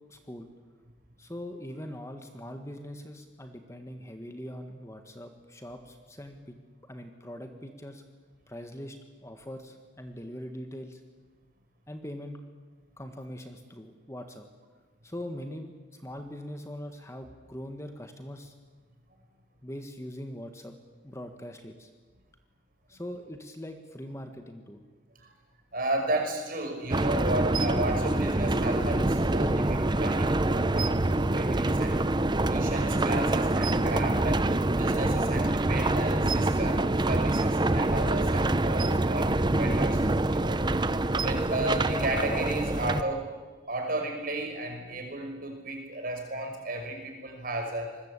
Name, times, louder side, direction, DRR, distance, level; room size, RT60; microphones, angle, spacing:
voice 1, 0.1-0.5 1.2-6.6 6.8-8.0 8.5-11.0 11.9-12.4 13.0-14.5 15.0-18.5 19.6-20.7 21.0-21.9 22.9-24.8, equal, 15° left, 6 dB, 1.7 m, -42 dB
voice 2, 25.7-32.1 32.5-34.4 34.8-40.1 40.3-40.6 41.1-43.3 43.7-47.9, right 1 dB, 50° right, 4 dB, 5.8 m, -33 dB
sound 1, 26.9-43.0, right 2 dB, 25° right, 0.8 m, -26 dB
26.0 x 21.0 x 8.4 m, 1.4 s
head